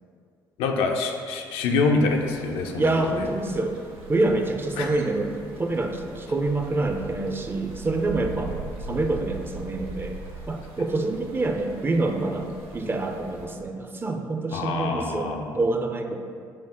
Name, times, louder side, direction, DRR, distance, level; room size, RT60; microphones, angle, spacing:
voice 1, 0.6-2.9 3.2-3.3 4.8-4.9 14.5-15.5, left 3 dB, 55° left, 3 dB, 0.4 m, -25 dB
sound 1, 2.1-13.5, right 3 dB, 50° right, 0.7 m, -41 dB
voice 2, 2.8-3.8 4.1-8.6 8.9-10.2 10.5-16.2, right 2 dB, 20° right, 3 dB, 0.4 m, -26 dB
5.7 x 2.0 x 3.6 m, 2.2 s
figure-of-eight pair, 50°, 11 cm